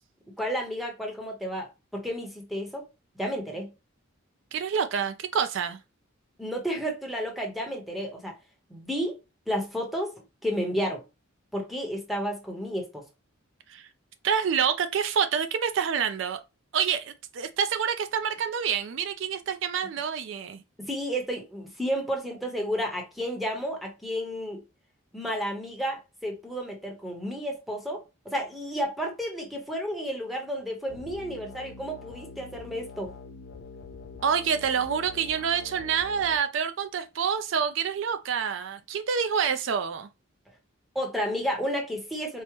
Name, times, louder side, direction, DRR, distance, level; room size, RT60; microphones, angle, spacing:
voice 1, 0.4-2.9 3.2-3.7 6.4-8.3 8.7-11.0 11.5-13.0 20.8-24.6 25.1-33.1 40.9-42.4, equal, ahead, 0.8 m, -32 dB
voice 2, 4.5-5.8 13.7-13.9 14.2-16.4 16.7-20.6 34.2-40.1, right 7 dB, 65° right, 0.4 m, -27 dB
sound 1, 30.9-36.4, left 4 dB, 55° left, 0.4 m, -45 dB
4.7 x 2.1 x 2.9 m
head